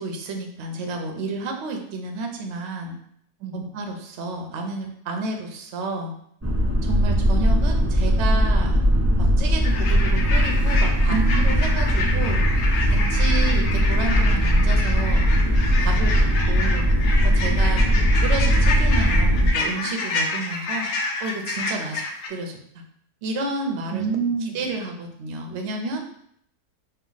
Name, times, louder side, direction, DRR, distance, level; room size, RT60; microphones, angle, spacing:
voice 1, 0.0-2.9 3.5-6.1 6.8-8.8 9.2-12.4 12.9-15.3 15.8-16.9 17.2-17.8 18.2-20.9 21.2-22.0 22.3-22.6 23.2-24.1 24.4-26.0, right 2 dB, 55° right, 3 dB, 0.8 m, -31 dB
voice 2, 3.4-3.7 11.1-11.6 15.9-16.0 23.9-24.6, right 6 dB, 85° right, 4 dB, 1.2 m, -27 dB
sound 1, 6.4-19.5, equal, 25° right, 0.3 m, -19 dB
sound 2, 9.6-22.3, left 3 dB, 65° left, 0.9 m, -29 dB
4.4 x 2.4 x 3.9 m, 0.68 s
omnidirectional pair, 1.7 m